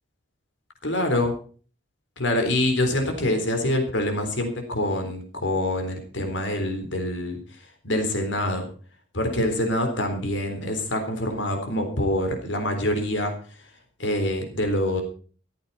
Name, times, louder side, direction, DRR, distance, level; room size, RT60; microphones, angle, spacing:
voice 1, 0.8-1.3 2.2-7.4 7.8-8.6 9.1-13.3 14.0-15.0, left 1 dB, 70° left, 5 dB, 3.8 m, -25 dB
14.5 x 14.5 x 4.2 m, 0.41 s
head